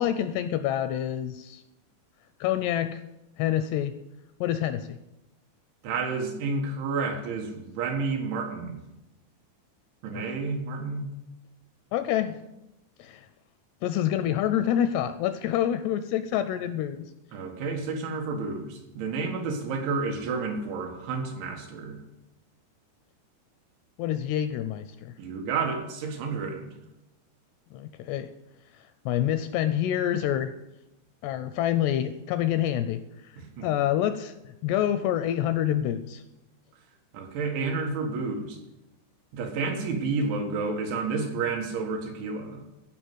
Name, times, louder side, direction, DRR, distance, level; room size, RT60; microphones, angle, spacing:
voice 1, 0.0-1.6 2.4-3.0 3.4-4.0 4.4-5.0 10.1-10.2 11.9-12.4 13.0-13.3 13.8-17.1 24.0-25.2 27.7-28.3 28.7-30.5 31.2-34.3 34.6-36.2, left 11 dB, 85° left, 11 dB, 2.4 m, -27 dB
voice 2, 5.8-8.8 10.0-11.1 17.3-22.0 25.2-26.7 33.4-33.7 37.1-38.6 39.3-42.6, right 4 dB, 85° right, 2 dB, 4.0 m, -30 dB
15.0 x 5.5 x 7.9 m, 0.96 s
omnidirectional pair, 5.2 m